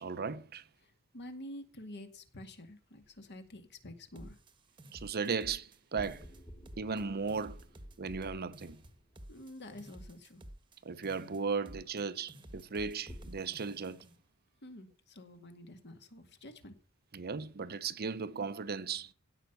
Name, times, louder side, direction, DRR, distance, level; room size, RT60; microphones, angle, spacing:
voice 1, 0.0-0.6 4.9-6.2 6.8-7.6 8.0-8.8 10.8-14.0 17.1-19.1, right 5 dB, 45° right, 0.7 m, -36 dB
voice 2, 0.8-4.4 9.3-10.4 14.6-16.8, left 1 dB, 50° left, 2.1 m, -49 dB
sound 1, 3.0-3.9 5.9-10.4 13.1-13.3, equal, 20° left, 2.0 m, -53 dB
sound 2, 4.1-5.8 6.0-7.0 7.3-10.8 11.0-12.0 12.3-14.2, right 1 dB, 20° right, 1.2 m, -52 dB
16.0 x 5.7 x 8.1 m
head